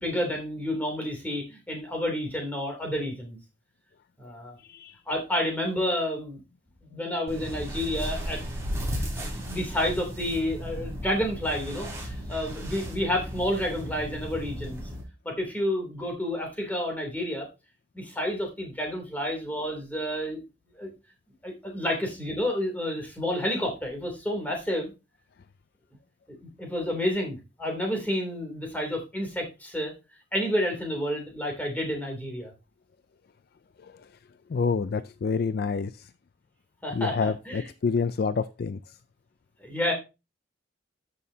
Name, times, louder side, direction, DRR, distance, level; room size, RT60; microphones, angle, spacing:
voice 1, 0.0-3.4 4.2-4.6 5.1-6.4 6.8-8.4 8.9-14.8 15.2-17.5 17.9-20.4 20.7-20.9 21.4-24.9 26.4-29.9 30.3-32.5 36.8-37.7 39.6-39.9, left 1 dB, 10° left, 2.9 m, -30 dB
sound 1, 7.3-15.0, equal, 15° right, 3.2 m, -35 dB
voice 2, 34.5-35.9 36.9-38.8, left 5 dB, 55° left, 0.4 m, -27 dB
12.5 x 6.3 x 2.7 m
head